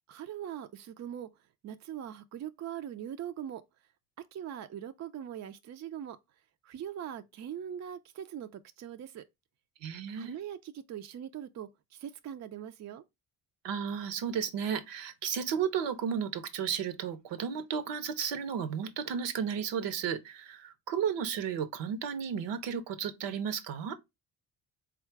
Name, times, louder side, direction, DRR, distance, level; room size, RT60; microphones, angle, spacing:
voice 1, 0.1-1.3 1.6-3.6 4.2-6.2 6.6-9.2 10.1-13.0, right 10 dB, 40° right, 0.4 m, -41 dB
voice 2, 9.8-10.4 13.6-23.9, right 7 dB, 65° right, 0.8 m, -33 dB
3.6 x 2.4 x 4.5 m
supercardioid pair, 70°, 47 cm